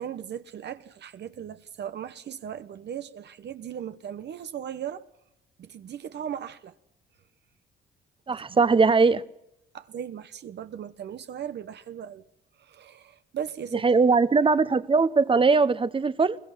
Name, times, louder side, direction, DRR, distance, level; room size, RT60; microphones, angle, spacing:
voice 1, 0.0-5.0 5.6-6.7 8.3-8.6 9.7-12.3 12.6-13.9, right 9 dB, 60° right, 1.0 m, -37 dB
voice 2, 8.3-9.2 13.8-16.4, right 4 dB, 25° right, 1.0 m, -20 dB
22.0 x 20.5 x 5.8 m
cardioid pair, 90°, 20 cm